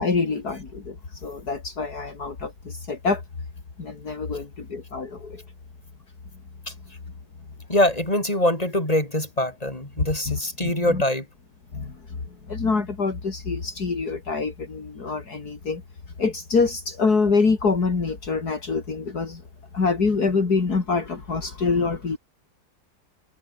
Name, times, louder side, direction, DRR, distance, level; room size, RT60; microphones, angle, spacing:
voice 1, 0.0-3.2 3.8-5.4 10.0-11.0 11.7-15.8 16.2-19.4 19.7-22.2, left 4 dB, 65° left, 3.4 m, -25 dB
voice 2, 7.7-11.2, left 1 dB, 20° left, 7.5 m, -23 dB
omnidirectional pair, 1.8 m